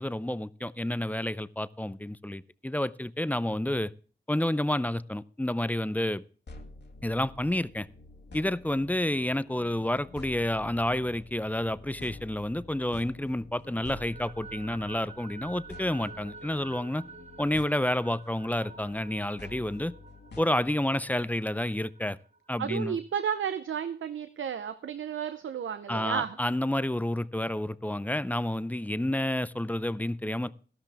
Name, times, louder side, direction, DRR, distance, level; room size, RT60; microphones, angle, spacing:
voice 1, 0.0-3.9 4.3-6.2 7.0-7.9 8.3-17.0 17.4-19.9 20.4-22.2 22.5-23.0 25.9-30.5, left 1 dB, 10° left, 0.5 m, -29 dB
sound 1, 6.5-21.2, left 3 dB, 65° left, 1.9 m, -49 dB
sound 2, 11.7-13.0 13.4-22.8, right 4 dB, 35° right, 1.6 m, -50 dB
voice 2, 22.6-26.4, right 8 dB, 90° right, 0.6 m, -32 dB
13.0 x 12.0 x 3.4 m
cardioid pair, 45°, 20 cm